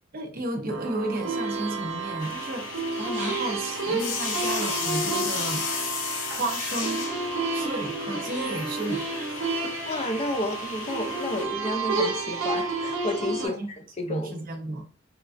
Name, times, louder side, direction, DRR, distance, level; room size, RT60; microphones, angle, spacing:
voice 1, 0.1-5.7 6.3-7.1 7.5-9.8 13.4-13.7 14.0-14.8, right 2 dB, 45° right, 0.6 m, -33 dB
sound 1, 0.7-13.5, right 3 dB, 85° right, 0.8 m, -31 dB
sound 2, 2.2-11.5, left 6 dB, 85° left, 0.6 m, -34 dB
sound 3, 2.3-13.3, right 1 dB, 10° right, 0.8 m, -43 dB
voice 2, 9.9-13.6 14.0-14.4, left 1 dB, 35° left, 0.4 m, -31 dB
3.0 x 2.4 x 2.4 m
head